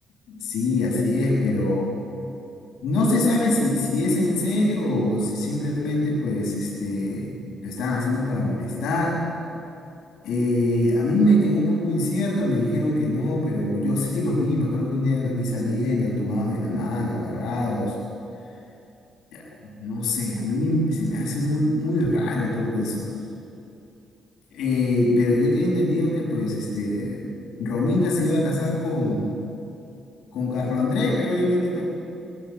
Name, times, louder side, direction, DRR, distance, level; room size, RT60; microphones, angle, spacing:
voice 1, 0.3-1.9 2.8-7.3 7.6-9.3 10.2-18.0 19.3-23.1 24.5-27.2 27.6-29.3 30.3-31.8, left 1 dB, 85° left, -4 dB, 7.2 m, -23 dB
21.0 x 19.0 x 9.1 m, 2.7 s
cardioid pair, 90°, 0 cm